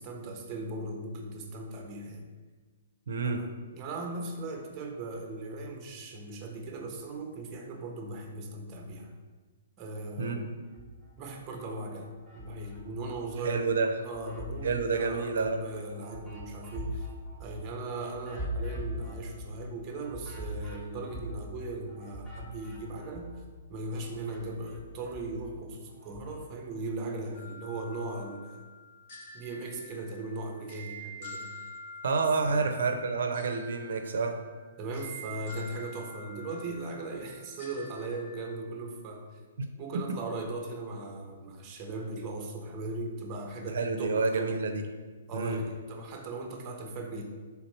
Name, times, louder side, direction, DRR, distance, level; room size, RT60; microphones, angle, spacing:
voice 1, 0.0-2.3 3.2-9.1 9.8-10.5 11.2-13.8 14.0-17.1 17.4-23.3 23.7-28.6 29.3-31.5 32.4-32.6 34.8-39.3 39.8-44.7 45.3-47.2, right 2 dB, 20° right, 2 dB, 0.6 m, -38 dB
voice 2, 3.1-3.4 10.2-10.4 13.4-13.9 14.6-15.6 32.0-34.4 39.6-39.7 43.7-44.8 45.3-45.6, right 4 dB, 75° right, 5 dB, 0.4 m, -29 dB
sound 1, 10.6-11.5 11.9-13.5 13.9-23.6 23.9-26.5, equal, 15° left, 0.8 m, -42 dB
sound 2, 27.3-38.5, equal, 50° left, 1.0 m, -47 dB
3.4 x 3.0 x 4.4 m, 1.4 s
hypercardioid pair, 160°, 0 cm